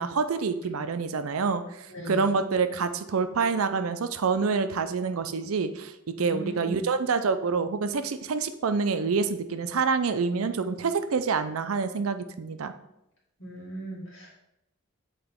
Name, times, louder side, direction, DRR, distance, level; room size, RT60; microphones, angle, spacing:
voice 1, 0.0-12.7, right 5 dB, 85° right, 10 dB, 0.5 m, -27 dB
voice 2, 1.9-2.4 6.2-6.8 13.4-14.4, right 1 dB, 70° left, -4 dB, 2.2 m, -38 dB
8.0 x 4.2 x 3.6 m, 0.84 s
head